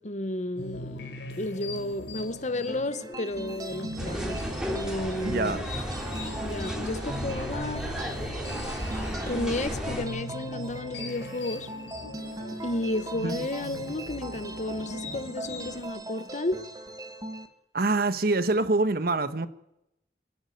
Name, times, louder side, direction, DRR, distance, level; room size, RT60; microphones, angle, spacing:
voice 1, 0.0-5.5 6.4-7.9 9.3-11.7 12.6-16.6, left 1 dB, 40° left, 1.1 m, -32 dB
sound 1, 0.6-15.9, left 2 dB, 85° left, 4.3 m, -41 dB
sound 2, 2.7-17.5, right 2 dB, 20° right, 1.8 m, -40 dB
sound 3, 4.0-10.0, equal, 5° right, 3.6 m, -34 dB
voice 2, 5.2-5.7 13.2-13.4 17.7-19.5, right 2 dB, 55° right, 1.2 m, -25 dB
25.5 x 11.0 x 9.4 m
head